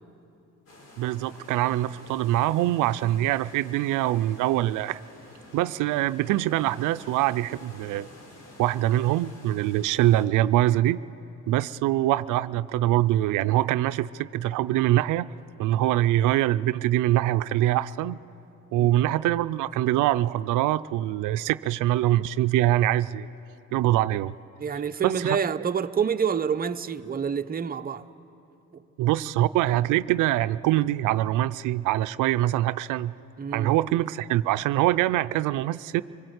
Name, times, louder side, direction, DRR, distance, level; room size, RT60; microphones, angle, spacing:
sound 1, 0.7-10.3, left 1 dB, 55° left, 4.1 m, -49 dB
voice 1, 1.0-5.0 5.5-8.1 8.6-11.0 11.5-15.3 15.6-18.2 18.7-23.3 23.7-24.3 25.0-25.4 29.0-33.1 33.5-36.0, right 14 dB, 90° right, 0.5 m, -24 dB
voice 2, 24.6-28.1 28.7-28.8 33.4-33.7, right 7 dB, 30° right, 0.7 m, -28 dB
25.5 x 20.0 x 8.0 m
cardioid pair, 90°, 30 cm